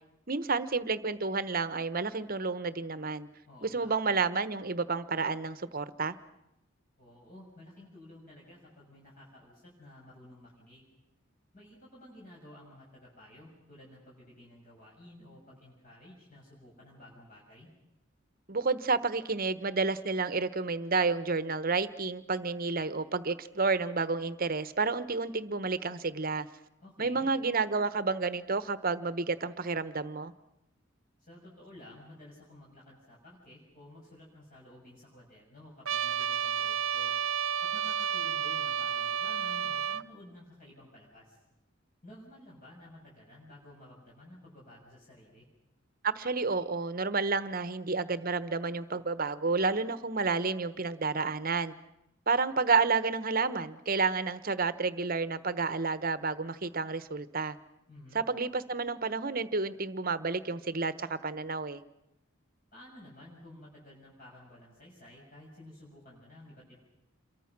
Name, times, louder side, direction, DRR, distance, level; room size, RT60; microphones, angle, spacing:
voice 1, 0.3-3.3 3.6-6.1 18.5-26.5 27.0-30.3 46.0-51.7 52.3-57.6 58.1-61.8, right 4 dB, 45° right, 14 dB, 1.1 m, -30 dB
voice 2, 3.4-3.9 7.0-10.8 11.5-17.7 26.8-27.3 31.2-37.1 37.6-41.4 42.0-45.5 57.9-58.2 62.7-66.8, left 1 dB, 40° left, -5 dB, 6.5 m, -53 dB
Trumpet, 35.9-40.0, right 8 dB, 80° right, 0.9 m, -31 dB
28.0 x 23.0 x 6.1 m, 0.87 s
head